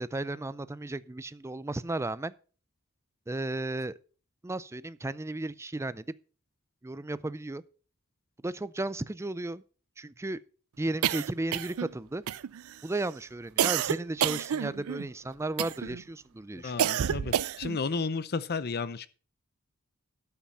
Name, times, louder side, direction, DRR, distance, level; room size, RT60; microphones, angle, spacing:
voice 1, 0.0-2.3 3.3-3.9 4.4-6.1 6.8-7.6 8.4-9.6 10.0-10.4 10.8-12.2 12.8-16.9, right 2 dB, 15° right, 0.4 m, -34 dB
sound 1, 11.0-11.9 12.3-12.8 13.6-15.1 15.6-16.0 16.8-17.8, right 10 dB, 85° right, 0.4 m, -29 dB
voice 2, 16.5-19.1, left 4 dB, 50° left, 0.7 m, -33 dB
12.5 x 5.9 x 5.6 m
head